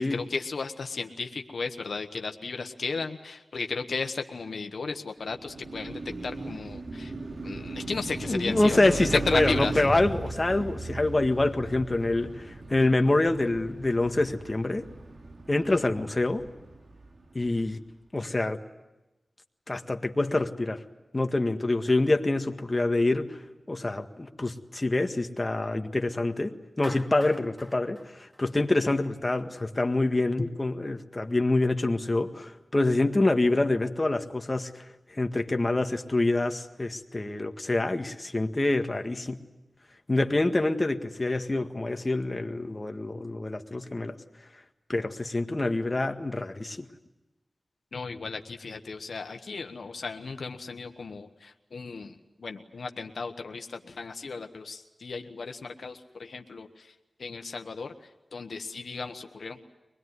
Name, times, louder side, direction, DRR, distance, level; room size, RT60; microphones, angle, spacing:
voice 1, 0.0-7.1 7.4-9.8 47.9-56.9 57.2-59.6, left 4 dB, 85° left, 5 dB, 1.2 m, -35 dB
Car passing by, 5.2-17.5, right 2 dB, 75° right, 3.3 m, -37 dB
voice 2, 8.2-14.8 15.5-16.4 17.3-17.8 18.1-18.6 19.7-20.8 21.1-23.4 23.7-28.0 28.4-34.8 35.1-39.4 40.1-44.1 44.9-46.9, left 2 dB, 35° left, 5 dB, 1.7 m, -26 dB
Clapping, 26.8-29.1, equal, 25° right, 3.6 m, -46 dB
24.5 x 20.0 x 9.7 m, 1.0 s
cardioid pair, 45°, 0 cm